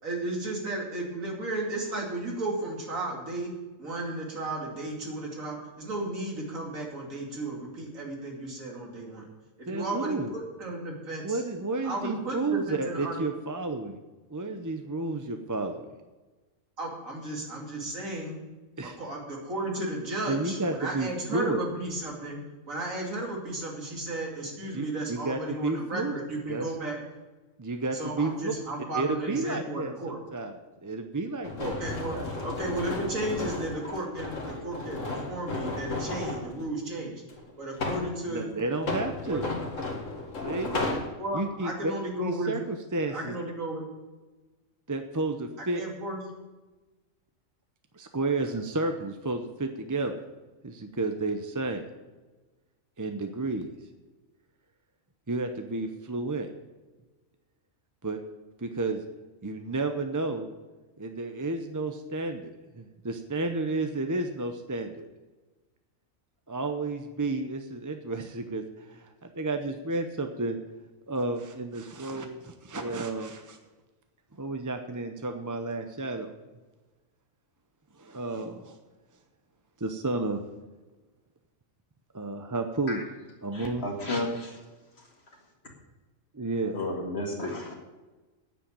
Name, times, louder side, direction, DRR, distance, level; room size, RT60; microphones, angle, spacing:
voice 1, 0.0-3.5 3.8-9.2 9.6-11.4 11.8-13.2 16.8-18.4 19.0-22.4 22.7-27.0 27.9-30.2 31.6-32.2 32.4-37.2 37.6-38.5 39.3-39.4 40.8-42.5 43.1-43.8 45.7-46.2 48.4-48.5, right 2 dB, 80° right, -1 dB, 3.0 m, -34 dB
voice 2, 9.7-10.3 11.2-14.0 14.3-15.8 18.8-19.0 20.3-21.6 24.7-26.2 26.5-26.7 27.6-28.5 28.9-29.9 30.3-31.7 32.1-32.3 38.3-39.5 40.4-40.8 41.3-41.9 42.2-43.4 44.9-45.8 47.9-50.2 50.6-51.8 53.0-53.7 55.3-56.5 58.0-58.2 58.6-59.0 59.4-60.5 61.0-65.0 66.5-70.6 71.1-73.6 74.4-76.3 78.0-78.8 79.8-80.4 82.1-83.0 83.4-83.9 86.3-86.8, right 2 dB, 20° right, 6 dB, 0.5 m, -31 dB
sound 1, 31.4-36.5 37.3-38.1 38.7-41.1, left 3 dB, 70° left, 2.2 m, -33 dB
voice 3, 83.5-84.5 86.7-87.7, left 1 dB, 50° left, 0 dB, 2.4 m, -32 dB
9.2 x 7.5 x 8.5 m, 1.2 s
omnidirectional pair, 1.4 m